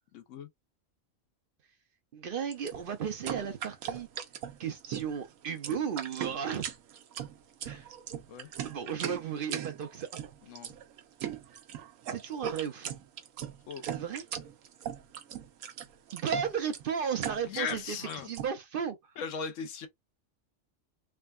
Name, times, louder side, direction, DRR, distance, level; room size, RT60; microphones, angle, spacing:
voice 1, 0.1-0.5 8.3-8.5 10.5-10.7 13.7-13.8 17.4-18.3 19.2-19.9, left 6 dB, 70° left, 1.0 m, -37 dB
voice 2, 2.1-4.1 4.6-6.7 7.6-7.9 8.6-10.1 12.1-13.0 13.9-14.2 16.1-18.0 18.2-19.0, right 7 dB, 60° right, 0.6 m, -34 dB
sound 1, 2.5-18.5, right 9 dB, 80° right, 1.0 m, -39 dB
3.5 x 2.2 x 2.3 m
omnidirectional pair, 1.4 m